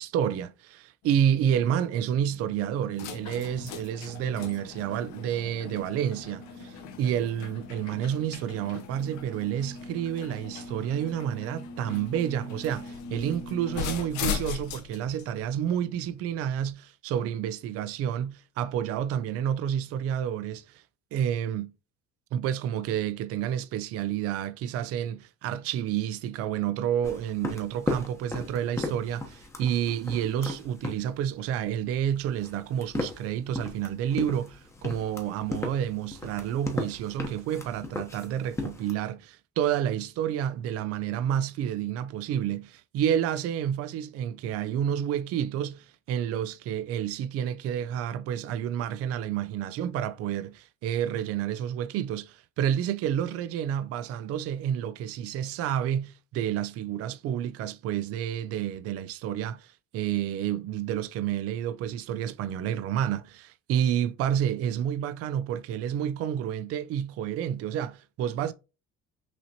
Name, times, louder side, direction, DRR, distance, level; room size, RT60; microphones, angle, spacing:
voice 1, 0.0-20.8 21.1-21.7 22.3-68.5, right 10 dB, 55° right, 0.4 m, -29 dB
sound 1, 1.0-16.7, left 5 dB, 80° left, 0.9 m, -39 dB
sound 2, 27.0-38.9, left 2 dB, 10° left, 0.8 m, -37 dB
5.9 x 2.9 x 2.7 m
cardioid pair, 150°, 29 cm